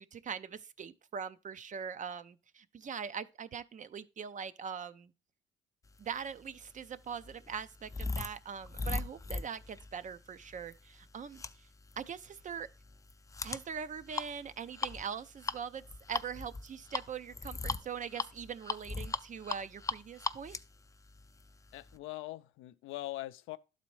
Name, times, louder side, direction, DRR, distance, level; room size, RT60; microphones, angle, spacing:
voice 1, 0.0-5.1 6.0-11.7 12.0-12.7 13.4-15.8 16.1-20.6, right 7 dB, 40° right, 0.5 m, -42 dB
sound 1, 6.3-22.0, left 3 dB, 15° left, 0.4 m, -40 dB
voice 2, 21.7-23.6, left 17 dB, 90° left, 0.4 m, -42 dB
12.0 x 4.1 x 3.1 m
cardioid pair, 90°, 20 cm